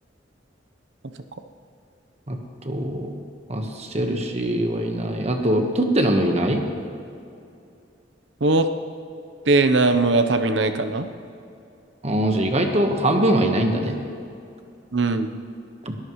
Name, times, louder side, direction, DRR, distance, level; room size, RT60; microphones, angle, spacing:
voice 1, 2.6-3.1 3.5-6.6 12.0-13.9 15.8-15.9, right 1 dB, 35° right, 4 dB, 1.3 m, -22 dB
voice 2, 9.5-11.1 14.9-15.3, right 3 dB, 80° right, 8 dB, 0.9 m, -19 dB
21.0 x 13.5 x 3.2 m, 2.6 s
head